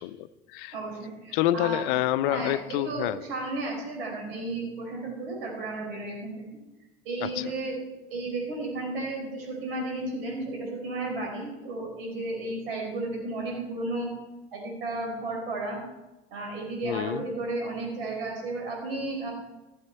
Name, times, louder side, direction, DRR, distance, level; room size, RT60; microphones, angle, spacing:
voice 1, 0.0-0.7 1.3-3.2 7.2-7.5 16.8-17.2, left 13 dB, 55° left, 15 dB, 0.6 m, -28 dB
voice 2, 0.7-1.8 2.2-6.4 7.0-7.8 8.1-14.1 14.5-15.8 16.3-19.3, right 2 dB, 65° right, 0 dB, 4.6 m, -33 dB
17.5 x 7.2 x 4.4 m, 1.0 s
figure-of-eight pair, 70°, 31 cm